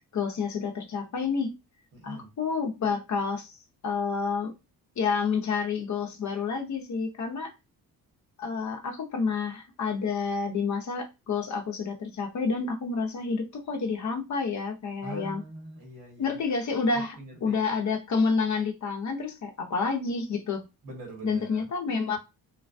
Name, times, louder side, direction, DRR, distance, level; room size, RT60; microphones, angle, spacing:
voice 1, 0.1-1.5 2.0-4.5 5.0-7.5 8.4-15.4 16.2-17.2 17.4-20.6 21.2-22.2, left 5 dB, 50° left, 0.7 m, -29 dB
voice 2, 1.9-2.3 15.0-16.4 16.9-17.7 20.8-21.7 22.1-22.2, right 2 dB, 60° right, 1.5 m, -43 dB
3.2 x 2.1 x 2.5 m
cardioid pair, 100°, 37 cm